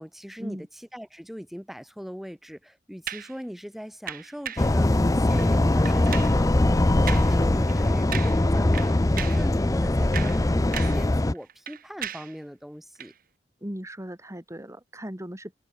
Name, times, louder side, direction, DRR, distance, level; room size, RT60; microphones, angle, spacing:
voice 1, 0.0-13.1, equal, ahead, 3.2 m, -40 dB
sound 1, 3.1-3.4 4.1-4.7 5.3-5.5 5.8-6.4 7.1-7.4 7.7-7.8 8.1-8.5 8.7-9.5 9.9-11.1 11.3-12.4 13.0-13.1, right 9 dB, 55° right, 3.6 m, -36 dB
sound 2, 4.6-11.3, left 1 dB, 20° left, 0.6 m, -21 dB
voice 2, 13.6-15.6, equal, 15° right, 2.9 m, -37 dB
head